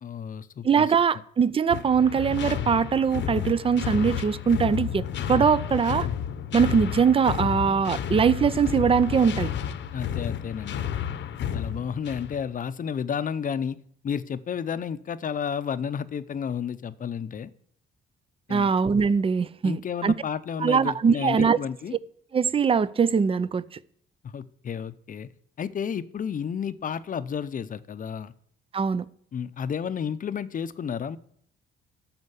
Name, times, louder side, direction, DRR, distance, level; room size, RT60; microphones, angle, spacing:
voice 1, 0.0-1.2 9.9-10.9 11.5-13.8 14.0-17.5 18.5-18.7 19.6-22.0 24.2-25.3 25.6-28.3 29.3-31.2, left 7 dB, 45° left, 0.6 m, -32 dB
voice 2, 0.6-5.0 5.3-6.1 6.5-9.5 18.5-20.1 20.6-21.6 22.3-23.8 28.7-29.1, right 6 dB, 30° right, 0.5 m, -22 dB
sound 1, 1.7-12.4, left 9 dB, 65° left, 0.9 m, -31 dB
13.0 x 4.4 x 8.1 m
cardioid pair, 90°, 20 cm